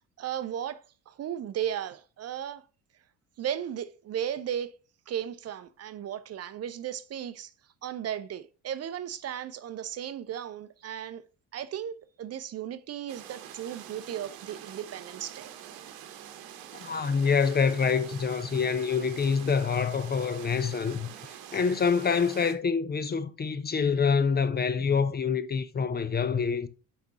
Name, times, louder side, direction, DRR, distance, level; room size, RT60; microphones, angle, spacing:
voice 1, 0.2-2.6 3.4-4.7 5.1-7.5 7.8-11.2 11.5-15.5 21.5-21.6, right 10 dB, 40° right, 0.6 m, -35 dB
sound 1, 13.1-22.5, right 10 dB, 65° right, 1.0 m, -46 dB
voice 2, 16.7-26.7, left 5 dB, 25° left, 0.6 m, -26 dB
5.8 x 4.2 x 4.7 m
hypercardioid pair, 60°, 39 cm